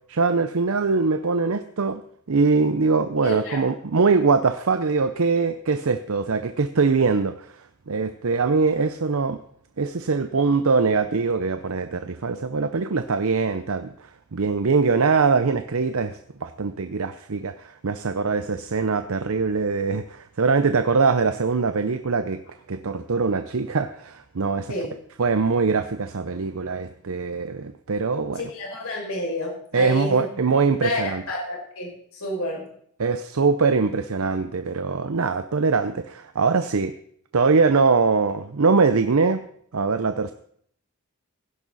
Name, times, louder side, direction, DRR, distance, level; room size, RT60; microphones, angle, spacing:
voice 1, 0.1-2.0 2.3-7.5 7.9-9.4 9.8-22.4 22.7-24.7 25.2-28.4 29.7-31.2 33.0-36.9 37.3-39.4 39.7-40.3, right 4 dB, 70° right, 10 dB, 0.7 m, -22 dB
voice 2, 3.2-3.6 24.7-24.9 28.4-30.3 30.8-32.7, left 1 dB, 75° left, -1 dB, 6.0 m, -29 dB
16.5 x 11.0 x 4.1 m, 0.65 s
head